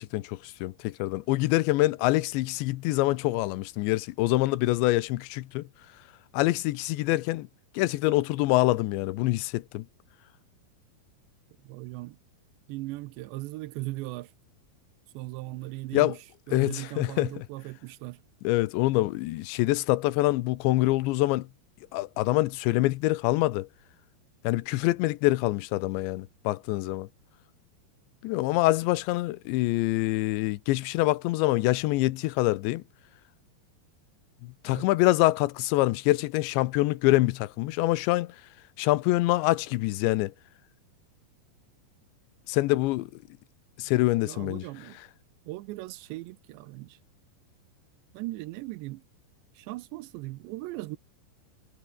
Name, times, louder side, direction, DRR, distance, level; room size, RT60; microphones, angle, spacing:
voice 1, 0.0-5.6 6.3-7.5 7.7-9.9 15.9-16.2 16.5-17.5 18.4-21.5 21.9-23.7 24.4-27.1 28.2-32.8 34.4-38.4 38.8-40.3 42.5-43.1 43.8-44.6, left 18 dB, 80° left, 3.1 m, -25 dB
voice 2, 11.6-12.2 12.7-14.3 15.1-16.2 16.5-18.2 34.7-34.9 44.3-45.0 45.5-47.0 48.1-49.0 49.6-51.0, right 19 dB, 80° right, 2.9 m, -38 dB
omnidirectional pair, 5.2 m